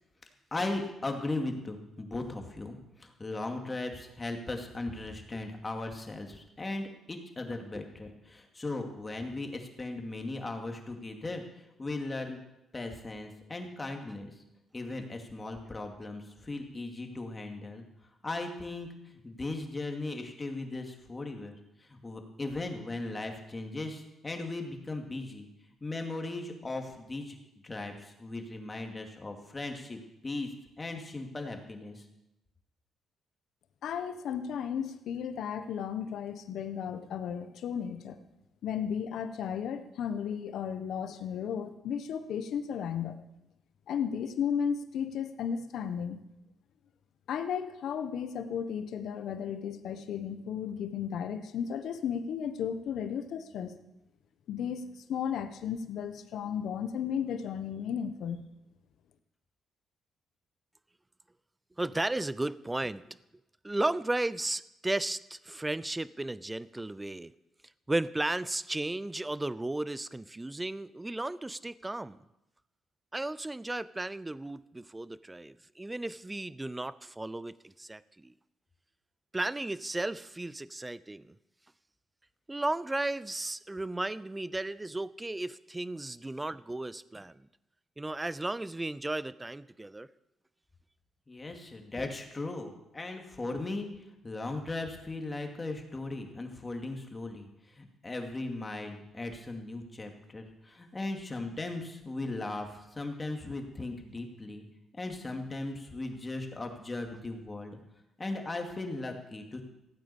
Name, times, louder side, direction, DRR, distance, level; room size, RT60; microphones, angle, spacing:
voice 1, 0.5-12.4 12.7-14.4 14.7-17.8 18.2-25.5 25.8-27.4 27.6-32.1 91.3-104.6 104.9-107.8 108.2-109.6, left 2 dB, 25° left, 3 dB, 2.4 m, -38 dB
voice 2, 33.8-38.2 38.6-43.2 43.9-46.2 47.3-53.8 54.5-58.4, left 8 dB, 75° left, 10 dB, 1.1 m, -34 dB
voice 3, 61.8-63.2 63.6-67.3 67.9-72.2 73.1-78.3 79.3-81.4 82.5-87.5 88.0-90.1, right 2 dB, 15° right, 18 dB, 0.5 m, -34 dB
15.5 x 9.1 x 7.0 m, 0.91 s
cardioid pair, 90°, 0 cm